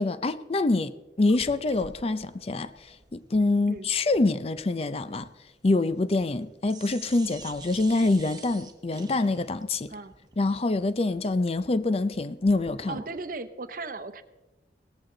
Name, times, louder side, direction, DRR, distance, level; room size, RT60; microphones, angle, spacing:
voice 1, 0.0-5.3 5.6-9.9 10.4-13.0, left 2 dB, 35° left, 0.5 m, -26 dB
sound 1, 1.3-6.4 6.7-13.2, right 4 dB, 25° right, 1.0 m, -48 dB
voice 2, 12.9-14.2, right 3 dB, 50° right, 0.9 m, -36 dB
17.5 x 14.5 x 3.9 m
head